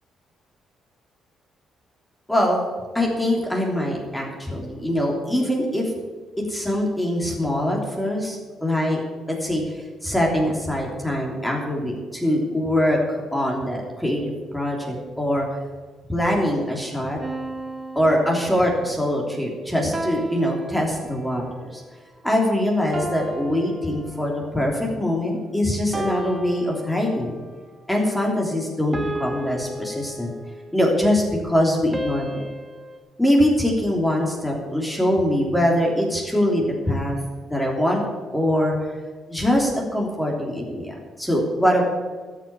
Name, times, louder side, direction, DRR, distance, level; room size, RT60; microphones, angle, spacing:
voice 1, 2.3-2.6 2.9-5.9 6.5-9.0 9.3-9.7 10.0-14.2 14.5-15.4 16.1-17.2 17.9-21.8 22.2-27.4 27.9-30.3 30.7-32.5 33.2-37.2 37.5-38.0 38.3-38.8 39.3-41.9, left 1 dB, 5° left, -1 dB, 3.1 m, -23 dB
sound 1, 17.2-18.9 19.9-21.4 22.9-24.6 25.9-27.4 28.9-30.7 31.9-33.0, right 2 dB, 25° right, 1.7 m, -34 dB
13.5 x 6.6 x 8.8 m, 1.4 s
cardioid pair, 90°, 0 cm